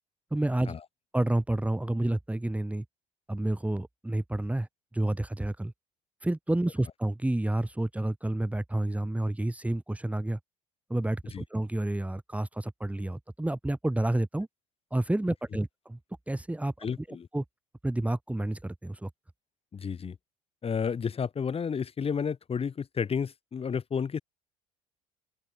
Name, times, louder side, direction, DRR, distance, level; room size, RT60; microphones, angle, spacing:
voice 1, 0.3-0.7 1.1-2.8 3.3-4.7 4.9-5.7 6.2-10.4 10.9-14.5 14.9-16.0 16.3-16.9 17.3-17.4 17.8-19.1, right 1 dB, 10° right, 3.7 m, -29 dB
voice 2, 16.8-17.3 19.7-20.2 20.6-24.2, left 6 dB, 35° left, 5.6 m, -31 dB
open air
figure-of-eight pair, 60°, 18 cm